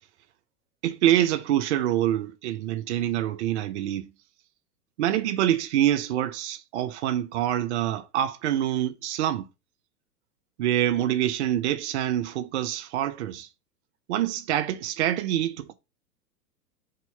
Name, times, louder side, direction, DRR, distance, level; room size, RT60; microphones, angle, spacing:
voice 1, 0.8-4.0 5.0-9.5 10.6-13.5 14.1-15.7, right 12 dB, 45° right, 0.8 m, -26 dB
6.5 x 3.0 x 5.5 m
figure-of-eight pair, 100°, 47 cm